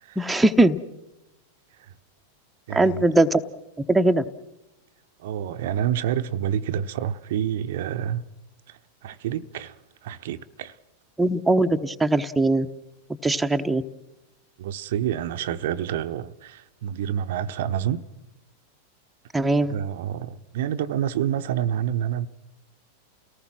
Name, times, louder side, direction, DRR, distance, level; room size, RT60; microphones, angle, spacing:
voice 1, 0.2-0.8 2.7-3.4 3.9-4.2 11.2-12.7 13.2-13.8 19.3-19.8, right 2 dB, 5° right, 0.9 m, -20 dB
voice 2, 2.7-3.0 5.2-8.3 8.7-10.8 14.6-18.1 19.7-22.3, right 10 dB, 55° right, 0.8 m, -28 dB
30.0 x 18.5 x 6.1 m
figure-of-eight pair, 90°, 0 cm